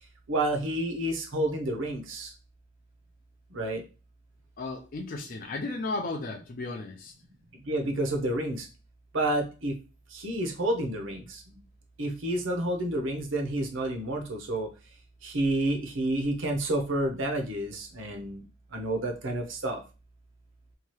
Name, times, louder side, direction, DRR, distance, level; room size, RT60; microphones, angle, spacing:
voice 1, 0.3-2.3 3.5-3.8 7.5-8.7 9.1-9.7 10.1-11.6 12.0-14.7 15.2-18.4 18.7-19.8, right 1 dB, 65° right, 4 dB, 0.7 m, -29 dB
voice 2, 4.6-7.1, left 2 dB, 40° left, 2 dB, 0.4 m, -34 dB
2.8 x 2.3 x 3.0 m, 0.32 s
head